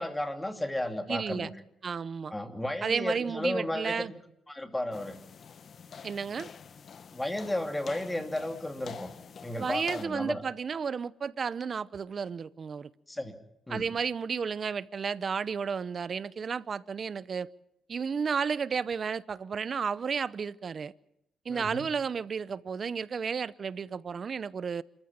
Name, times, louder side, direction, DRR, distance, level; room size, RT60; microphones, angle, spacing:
voice 1, 0.0-1.5 2.3-4.1 4.5-5.2 7.1-9.1 9.4-10.4 13.1-13.4 13.7-13.8 21.5-21.9, left 1 dB, 10° left, 2.7 m, -33 dB
voice 2, 1.1-1.5 1.8-2.3 2.8-4.1 6.0-6.5 9.6-12.9 13.7-17.5 17.9-20.9 21.4-24.8, right 6 dB, 45° right, 0.8 m, -32 dB
sound 1, 4.9-10.0, left 6 dB, 50° left, 1.0 m, -47 dB
27.0 x 14.0 x 8.9 m
cardioid pair, 90°, 0 cm